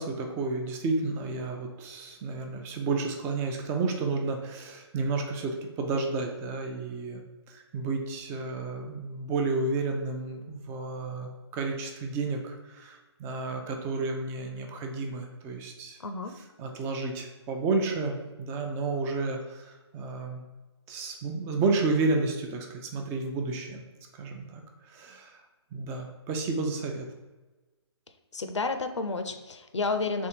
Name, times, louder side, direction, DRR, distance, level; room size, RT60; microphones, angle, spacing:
voice 1, 0.0-7.2 7.5-16.0 16.4-20.4 20.9-23.8 24.1-24.6 24.9-25.4 25.7-27.1, right 3 dB, 15° right, 3 dB, 0.5 m, -31 dB
voice 2, 16.0-16.3 28.3-30.3, left 3 dB, 90° left, 8 dB, 0.6 m, -31 dB
3.5 x 3.4 x 4.3 m, 1.2 s
hypercardioid pair, 145°, 15 cm